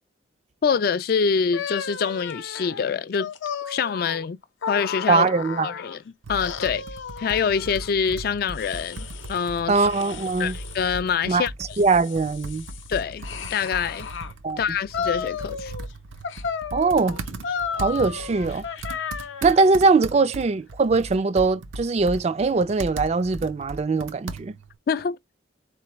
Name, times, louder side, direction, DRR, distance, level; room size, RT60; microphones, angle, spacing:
voice 1, 0.6-3.3 3.7-4.4 4.7-5.3 5.6-6.0 6.3-6.8 7.2-9.9 10.4-11.8 12.9-14.1 14.6-15.7 24.9-25.2, left 6 dB, 50° left, 0.3 m, -25 dB
sound 1, 1.5-6.0 6.4-7.9 8.5-9.5 9.9-10.9 11.5-14.3 14.9-15.9 16.2-19.7, left 6 dB, 85° left, 0.7 m, -34 dB
voice 2, 5.1-5.7 9.7-10.6 11.3-11.5 11.8-12.6 14.4-14.6 16.7-17.4 17.8-18.6 19.4-24.5, right 4 dB, 35° right, 0.3 m, -21 dB
Computer keyboard, 6.2-24.8, right 2 dB, 90° right, 0.6 m, -38 dB
4.1 x 3.3 x 3.0 m
head